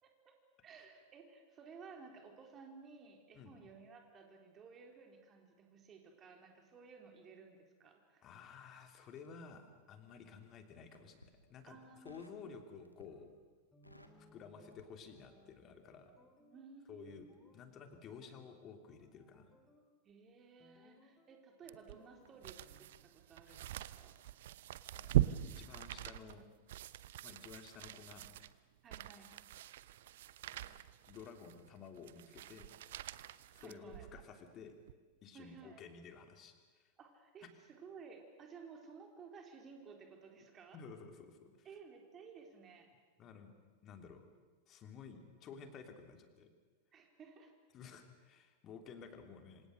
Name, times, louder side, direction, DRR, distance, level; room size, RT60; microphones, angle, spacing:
voice 1, 0.0-0.4 0.6-8.3 10.2-10.4 11.6-12.2 16.4-17.3 20.0-24.2 28.8-29.3 33.5-34.1 35.3-35.8 37.0-40.8 41.6-42.9 46.9-47.5, right 5 dB, 25° right, 3 dB, 4.3 m, -56 dB
voice 2, 8.2-13.3 14.2-16.1 16.9-19.5 23.5-23.6 24.9-26.5 27.2-28.3 30.5-30.7 31.1-32.7 33.5-34.7 35.2-36.9 40.7-41.7 43.2-43.5 43.8-44.3 44.7-46.5 47.7-49.7, left 6 dB, 30° left, 6 dB, 3.2 m, -53 dB
Crackle, 9.1-10.2 10.8-11.4 12.0-12.4 12.8-13.3 13.6-15.5 15.8-16.0, equal, 90° left, 2.0 m, -62 dB
sound 1, 13.1-13.3 13.7-16.7 17.1-17.6 17.9-18.4 18.9-19.9 20.6-21.5 21.7-22.9, left 1 dB, 5° left, 3.3 m, -66 dB
sound 2, 21.7-34.3 34.8-34.9, right 13 dB, 55° right, 0.8 m, -41 dB
27.0 x 26.5 x 6.6 m, 1.4 s
figure-of-eight pair, 90°, 0 cm